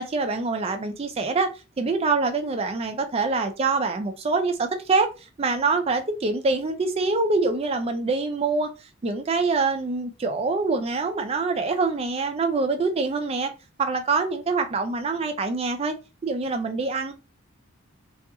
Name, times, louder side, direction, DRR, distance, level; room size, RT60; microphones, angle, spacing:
voice 1, 0.0-1.5 1.8-5.1 5.4-8.7 9.0-13.5 13.8-16.0 16.2-17.1, right 3 dB, 30° right, 0.3 m, -25 dB
2.3 x 2.3 x 2.7 m
head